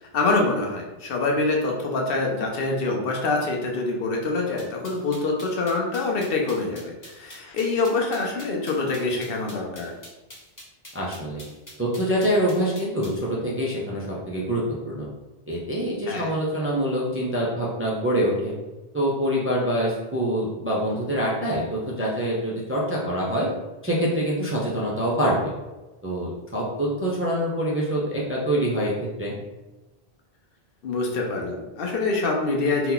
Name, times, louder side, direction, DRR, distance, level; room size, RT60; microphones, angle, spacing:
voice 1, 0.0-9.9 16.1-16.3 30.8-32.9, left 3 dB, 70° left, 0 dB, 0.8 m, -25 dB
sound 1, 4.6-13.2, left 1 dB, 20° left, 0.7 m, -45 dB
voice 2, 10.9-11.4 11.8-15.1 15.5-18.5 18.9-23.5 23.8-25.5 26.0-28.9 29.2-29.4, equal, 20° right, -5 dB, 0.4 m, -25 dB
2.8 x 2.2 x 3.8 m, 1.1 s
omnidirectional pair, 1.0 m